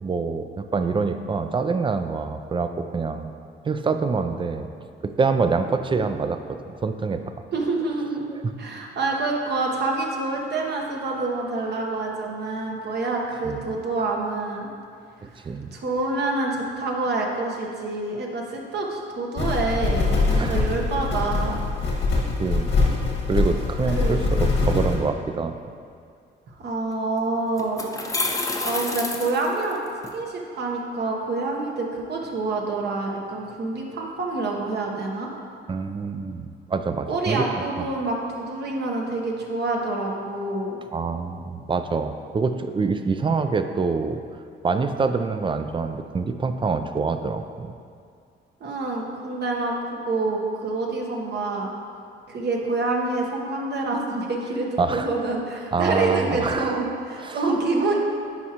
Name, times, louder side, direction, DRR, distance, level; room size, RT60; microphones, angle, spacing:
voice 1, 0.0-3.3 3.6-4.7 5.0-7.2 13.4-13.7 15.2-15.7 20.3-20.7 22.4-22.7 23.2-25.5 35.7-37.5 37.8-37.9 40.9-44.2 44.6-47.7 54.8-55.1 55.7-56.8 57.2-57.4, right 4 dB, 25° right, 8 dB, 0.4 m, -26 dB
voice 2, 7.5-8.3 8.6-14.7 15.2-15.4 15.7-21.6 23.9-24.2 26.5-27.9 28.6-29.8 30.1-35.3 37.1-40.8 48.6-51.7 52.3-58.0, right 3 dB, 55° right, -1 dB, 1.1 m, -27 dB
sound 1, 19.4-25.0, left 3 dB, 75° left, 1.6 m, -23 dB
sound 2, 26.9-27.0 27.6-30.1, left 2 dB, 15° left, 0.7 m, -28 dB
9.7 x 4.8 x 2.9 m, 2.3 s
cardioid pair, 90°, 20 cm